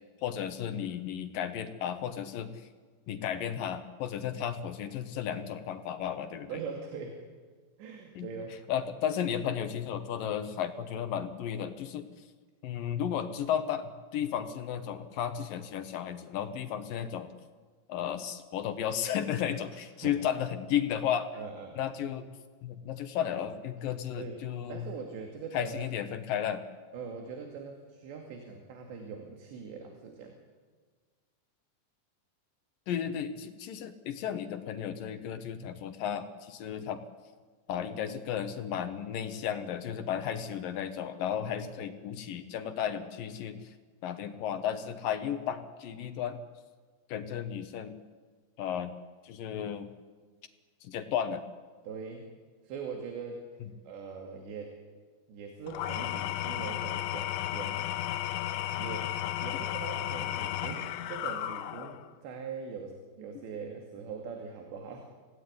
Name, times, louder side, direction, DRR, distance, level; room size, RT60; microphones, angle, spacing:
voice 1, 0.2-2.7 3.1-6.5 8.2-8.3 8.7-12.1 12.6-17.3 17.9-21.3 21.8-22.3 22.6-24.8 25.5-26.6 32.9-37.0 37.7-43.7 44.0-46.4 47.1-47.9 48.6-48.9 49.2-49.9 50.8-51.4 53.6-53.7 59.5-59.6, left 9 dB, 65° left, 9 dB, 2.4 m, -34 dB
voice 2, 6.5-7.2 7.8-8.6 20.0-20.2 21.3-21.8 24.2-24.4 24.7-25.9 26.9-30.4 41.3-41.9 51.9-52.3 52.6-53.4 53.8-54.8 55.3-57.9 58.7-59.2 59.4-65.1, right 5 dB, 70° right, 3 dB, 4.5 m, -42 dB
Engine / Tools, 55.7-62.1, left 13 dB, 85° left, 3.3 m, -34 dB
26.0 x 18.0 x 9.7 m, 1.5 s
omnidirectional pair, 5.3 m